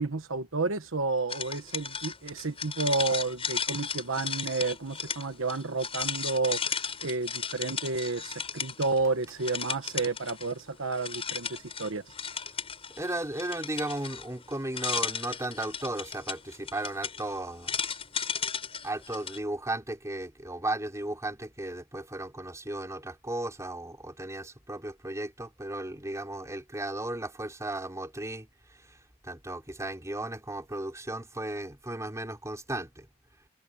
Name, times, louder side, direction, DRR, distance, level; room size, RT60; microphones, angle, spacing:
voice 1, 0.0-12.1, right 3 dB, 65° right, 1.2 m, -31 dB
sound 1, 1.3-9.0 9.2-10.6 10.9-19.4, left 6 dB, 30° left, 5.5 m, -35 dB
voice 2, 13.0-17.8 18.8-29.0 29.2-33.1, right 1 dB, 15° right, 3.5 m, -35 dB
head